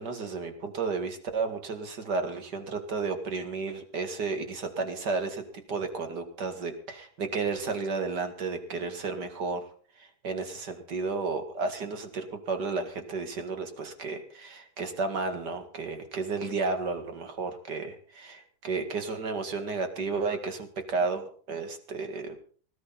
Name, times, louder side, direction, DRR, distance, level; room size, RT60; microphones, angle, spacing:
voice 1, 0.0-9.6 10.0-22.4, right 4 dB, 40° right, 7 dB, 2.0 m, -32 dB
20.0 x 14.5 x 4.2 m, 0.43 s
omnidirectional pair, 3.6 m